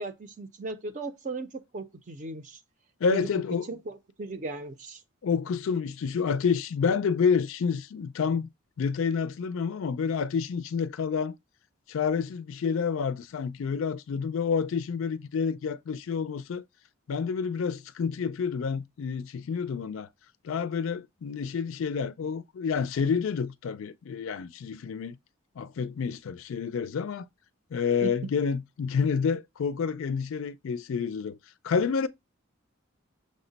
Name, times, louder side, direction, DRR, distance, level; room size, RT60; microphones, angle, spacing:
voice 1, 0.0-2.6 3.1-3.4 3.7-5.0 28.0-28.1, right 3 dB, 35° right, 0.5 m, -37 dB
voice 2, 3.0-3.7 5.2-8.5 8.8-11.4 11.9-16.6 17.1-20.1 20.4-25.2 25.6-27.3 27.7-31.4 31.6-32.1, left 6 dB, 70° left, 0.4 m, -29 dB
6.3 x 2.1 x 3.9 m
head